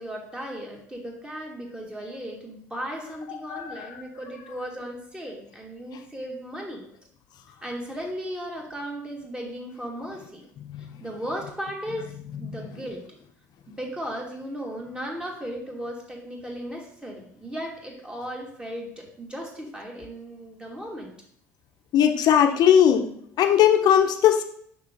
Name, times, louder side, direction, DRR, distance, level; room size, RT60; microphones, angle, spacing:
voice 1, 0.0-6.8 7.6-10.4 11.0-12.1 12.4-13.0 13.7-21.1 22.4-22.6, equal, 10° right, -1 dB, 2.6 m, -36 dB
voice 2, 3.5-3.9 10.7-10.8 12.4-12.6 21.9-23.0 23.4-24.4, left 9 dB, 55° left, 6 dB, 1.1 m, -19 dB
6.5 x 6.0 x 4.1 m, 0.65 s
hypercardioid pair, 65°, 8 cm